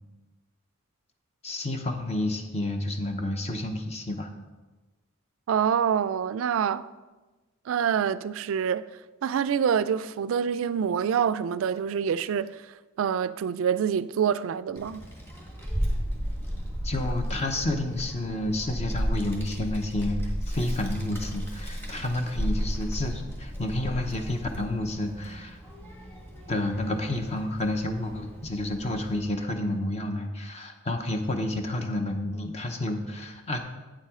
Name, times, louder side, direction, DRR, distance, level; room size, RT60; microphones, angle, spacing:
voice 1, 1.4-4.3 16.8-20.2 20.5-25.6 26.5-33.6, left 1 dB, 30° left, 0.7 m, -30 dB
voice 2, 5.5-6.9 7.7-8.8 9.2-12.6 13.0-15.0, right 7 dB, 65° right, 0.3 m, -26 dB
Child speech kid speaking, 14.7-29.2, equal, 10° left, 1.5 m, -34 dB
8.8 x 7.3 x 3.6 m
head